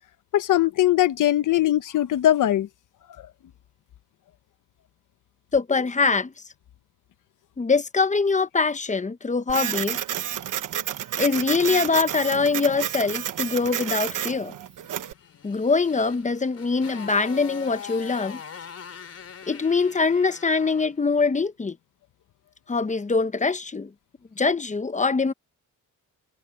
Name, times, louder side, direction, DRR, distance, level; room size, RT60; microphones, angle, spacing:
voice 1, 0.3-2.7, left 13 dB, 75° left, 1.0 m, -20 dB
voice 2, 5.5-6.3 7.6-10.0 11.2-14.5 15.4-18.4 19.5-21.8 22.7-23.9 24.4-25.3, left 4 dB, 25° left, 0.9 m, -23 dB
Printer, 9.5-15.1, right 10 dB, 75° right, 1.3 m, -30 dB
Motorcycle, 14.9-21.0, left 7 dB, 50° left, 3.3 m, -42 dB
cardioid pair, 100°, 32 cm